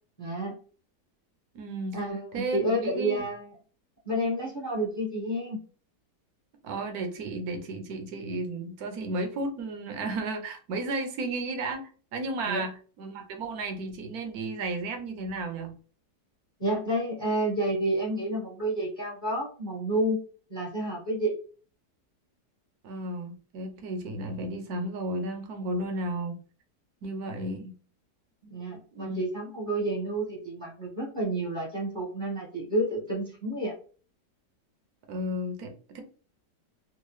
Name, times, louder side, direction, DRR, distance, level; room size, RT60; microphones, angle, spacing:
voice 1, 0.2-0.6 1.9-3.5 4.0-5.6 12.4-12.6 16.6-20.2 20.5-21.4 28.5-33.7, right 1 dB, 20° left, -3 dB, 1.0 m, -30 dB
voice 2, 1.5-2.0 2.3-3.3 6.6-12.7 13.0-15.7 22.8-26.4 27.0-27.7 28.9-29.2 35.1-36.0, right 2 dB, 65° right, 5 dB, 1.2 m, -33 dB
3.6 x 2.2 x 3.2 m, 0.39 s
omnidirectional pair, 1.8 m